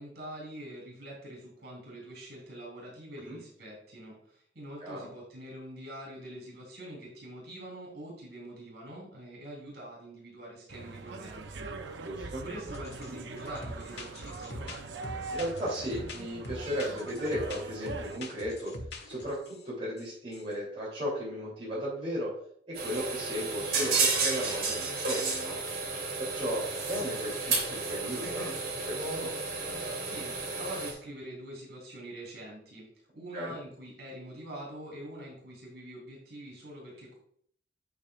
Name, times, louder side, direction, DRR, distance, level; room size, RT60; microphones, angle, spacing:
voice 1, 0.0-12.0 12.4-14.7 30.0-32.9 33.1-37.2, right 1 dB, 65° right, -2 dB, 3.5 m, -44 dB
sound 1, 10.7-18.2, right 3 dB, 90° right, 0.7 m, -42 dB
voice 2, 12.0-12.4 15.3-18.7 19.0-22.3 22.7-25.6 26.2-29.3 33.3-33.5, equal, 35° right, -7 dB, 3.0 m, -35 dB
sound 2, 12.7-13.1 13.4-19.6 20.0-20.1 20.3-20.5, left 1 dB, 65° left, 1.6 m, -43 dB
sound 3, 22.7-30.9, right 3 dB, 50° right, 2.8 m, -32 dB
8.9 x 8.3 x 2.4 m, 0.63 s
head